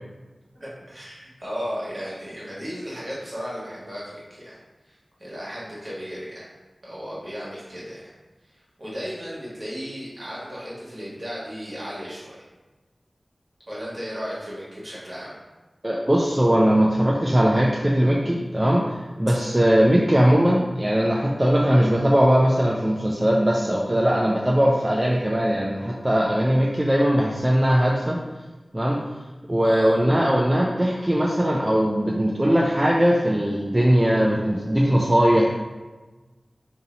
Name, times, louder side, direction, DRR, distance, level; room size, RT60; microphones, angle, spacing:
voice 1, 0.5-4.6 4.8-6.5 6.8-8.1 8.8-12.4 13.7-15.3 19.3-19.4 29.6-29.9, equal, 45° right, -7 dB, 1.4 m, -35 dB
voice 2, 15.8-28.2 28.7-29.0 29.5-35.5, equal, 20° right, -3 dB, 0.4 m, -20 dB
2.8 x 2.7 x 3.9 m, 1.2 s
wide cardioid pair, 65°, 0 cm